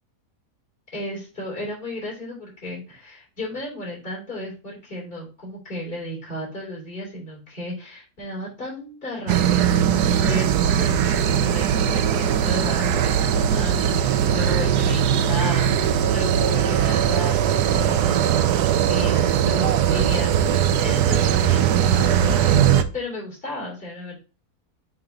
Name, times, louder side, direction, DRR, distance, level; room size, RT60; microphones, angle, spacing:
voice 1, 0.9-22.7 22.9-24.2, left 1 dB, 35° left, -3 dB, 3.4 m, -34 dB
sound 1, 9.3-22.8, right 9 dB, 90° right, 1.2 m, -20 dB
6.8 x 3.8 x 3.9 m, 0.34 s
omnidirectional pair, 1.6 m